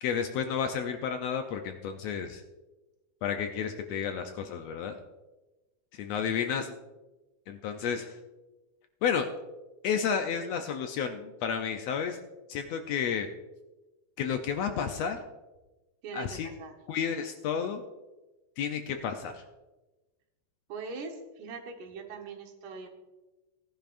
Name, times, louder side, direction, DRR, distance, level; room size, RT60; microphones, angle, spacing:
voice 1, 0.0-2.4 3.2-5.0 5.9-6.7 7.5-8.2 9.0-9.3 9.8-12.2 12.5-13.3 14.2-15.2 16.1-16.5 16.9-17.8 18.6-19.4, left 7 dB, 75° left, 6 dB, 1.6 m, -31 dB
voice 2, 16.0-16.7 20.7-22.9, right 4 dB, 85° right, 3 dB, 2.8 m, -41 dB
18.0 x 10.5 x 2.5 m, 1.1 s
omnidirectional pair, 3.5 m